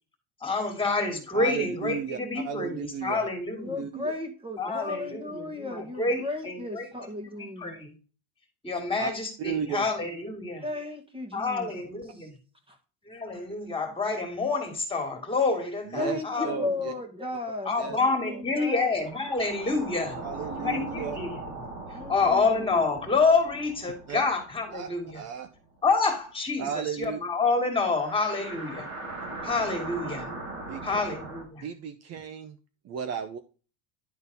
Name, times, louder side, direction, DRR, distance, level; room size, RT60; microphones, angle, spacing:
voice 1, 0.4-3.8 4.6-6.9 7.3-7.9 8.6-10.6 11.3-12.4 13.1-16.6 17.6-20.1 20.6-21.3 22.1-25.2 25.8-28.9 29.4-30.3 30.8-31.6, left 3 dB, 15° left, 2.5 m, -28 dB
voice 2, 1.3-3.3 3.8-4.1 9.0-9.1 9.4-9.9 15.9-16.9 17.8-18.0 18.3-18.4 20.2-21.2 24.1-24.2 24.7-25.5 26.6-27.2 30.7-31.0 31.6-32.6 32.8-33.4, right 7 dB, 40° right, 0.8 m, -34 dB
voice 3, 3.6-7.8 10.6-11.7 12.1-12.3 12.7-12.8 16.0-18.9 21.9-23.1, left 2 dB, 15° right, 1.8 m, -35 dB
sound 1, 18.9-25.6 25.8-25.9 27.9-31.4, right 2 dB, 90° right, 4.3 m, -39 dB
11.0 x 4.0 x 4.1 m
supercardioid pair, 120°, 37 cm